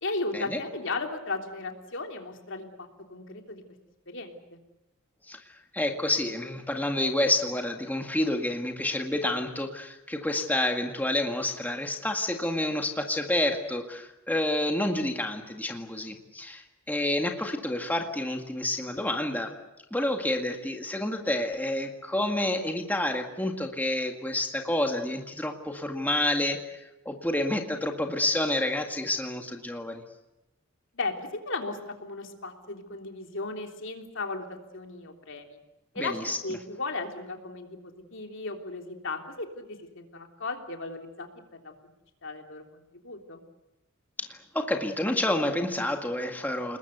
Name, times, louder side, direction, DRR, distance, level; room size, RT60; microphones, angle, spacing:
voice 1, 0.0-3.6 4.1-4.6 30.9-35.6 35.9-41.7 42.2-43.4, left 3 dB, 60° left, 3 dB, 3.3 m, -36 dB
voice 2, 5.3-19.5 19.9-30.0 36.0-36.4 44.2-46.8, left 1 dB, 10° left, 3 dB, 1.9 m, -29 dB
29.0 x 20.5 x 8.1 m, 0.94 s
head